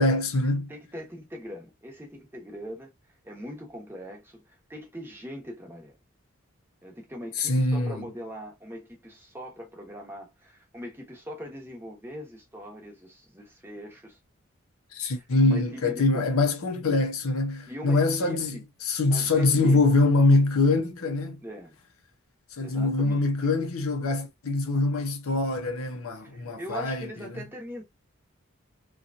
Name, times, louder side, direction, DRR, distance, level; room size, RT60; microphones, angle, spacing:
voice 1, 0.0-0.7 7.4-8.0 14.9-21.4 22.6-27.4, left 2 dB, 90° left, 0.7 m, -24 dB
voice 2, 0.7-2.9 3.2-6.0 6.8-14.2 15.1-16.3 17.7-18.6 19.1-19.8 21.4-21.7 22.6-23.2 26.2-27.8, equal, 10° right, 0.8 m, -41 dB
2.8 x 2.3 x 2.4 m
head